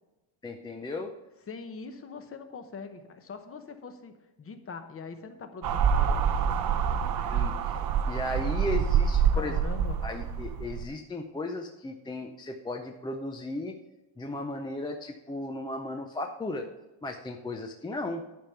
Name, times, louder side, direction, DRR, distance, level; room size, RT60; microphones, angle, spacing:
voice 1, 0.4-1.1 7.3-7.5 8.1-9.6 10.0-13.8 14.2-16.7 17.0-18.2, left 2 dB, 10° left, 3 dB, 0.4 m, -35 dB
voice 2, 1.5-7.1 9.3-10.0, left 5 dB, 30° left, 8 dB, 0.9 m, -43 dB
sound 1, 5.6-10.8, right 7 dB, 45° right, 0.7 m, -26 dB
10.5 x 5.2 x 5.8 m, 1.0 s
cardioid pair, 145°, 48 cm